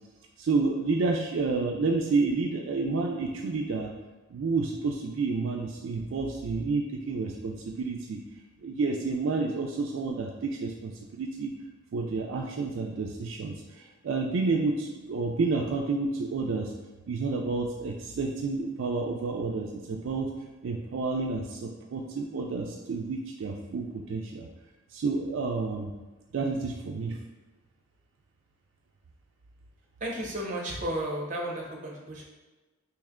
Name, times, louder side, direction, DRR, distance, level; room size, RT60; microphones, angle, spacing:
voice 1, 0.4-3.9 4.3-8.2 8.6-11.5 11.9-16.7 17.1-20.3 20.6-24.5 24.9-25.9 26.3-27.2, right 3 dB, 75° right, 1 dB, 0.4 m, -30 dB
voice 2, 30.0-32.2, right 1 dB, 40° right, -2 dB, 0.8 m, -33 dB
3.2 x 2.9 x 3.5 m, 1.2 s
head